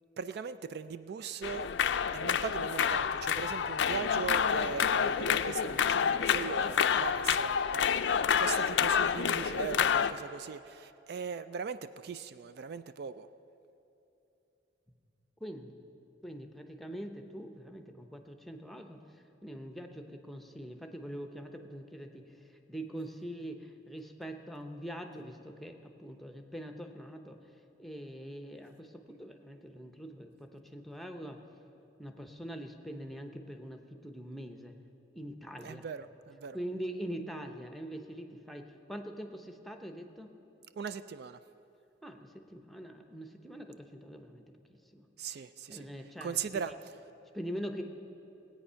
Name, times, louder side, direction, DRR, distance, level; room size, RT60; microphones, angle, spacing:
voice 1, 0.2-1.7 2.1-13.3 35.6-36.6 40.8-41.4 45.2-45.9 46.2-46.7, right 6 dB, 60° right, 13 dB, 0.4 m, -39 dB
sound 1, 1.4-10.1, left 7 dB, 75° left, 0.4 m, -28 dB
voice 2, 15.4-15.8 16.2-19.0 19.4-27.4 27.8-31.4 32.0-34.7 35.1-35.9 36.5-40.3 42.0-44.5 44.9-45.1 45.7-46.6 47.3-47.8, equal, ahead, 4 dB, 0.8 m, -43 dB
19.0 x 8.7 x 5.6 m, 2.8 s
head